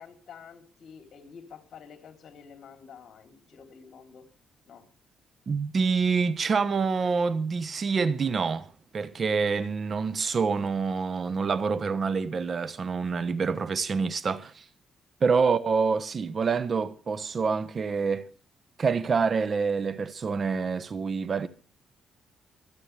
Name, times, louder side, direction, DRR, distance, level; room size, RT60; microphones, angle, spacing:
voice 1, 0.0-4.3 4.7-4.9 15.4-15.5, left 6 dB, 60° left, 3.4 m, -49 dB
voice 2, 5.5-8.7 8.9-14.6 15.2-18.3 18.8-21.5, right 5 dB, 40° right, 1.1 m, -26 dB
27.0 x 9.0 x 3.4 m
cardioid pair, 90°, 0 cm